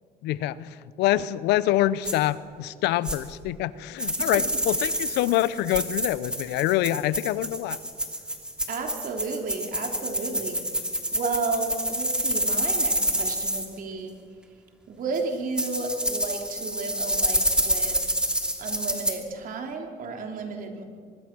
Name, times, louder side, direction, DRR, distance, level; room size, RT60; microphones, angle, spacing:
voice 1, 0.2-0.7 1.0-7.8, left 14 dB, 90° left, 17 dB, 0.8 m, -25 dB
sound 1, 2.0-2.1 3.0-3.2 4.0-13.7 15.1-15.2 15.6-19.1, right 1 dB, 5° right, 2.7 m, -27 dB
voice 2, 8.7-10.6 11.1-14.1 14.9-18.0 18.6-20.8, right 4 dB, 55° right, 2 dB, 3.6 m, -32 dB
24.0 x 22.0 x 6.2 m, 2.1 s
cardioid pair, 110°, 17 cm